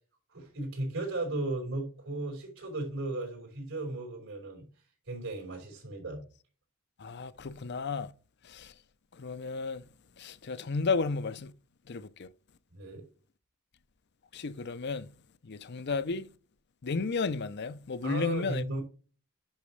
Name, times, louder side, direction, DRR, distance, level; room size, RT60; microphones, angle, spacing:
voice 1, 0.3-4.7 5.1-6.2 12.7-13.0 18.0-18.8, right 2 dB, 80° right, 4.6 m, -36 dB
voice 2, 7.0-8.1 8.5-8.7 9.2-9.8 10.2-11.5 11.9-12.3 14.3-15.1 15.4-16.3 16.8-18.8, left 4 dB, 55° left, 0.6 m, -33 dB
10.5 x 5.9 x 3.2 m
head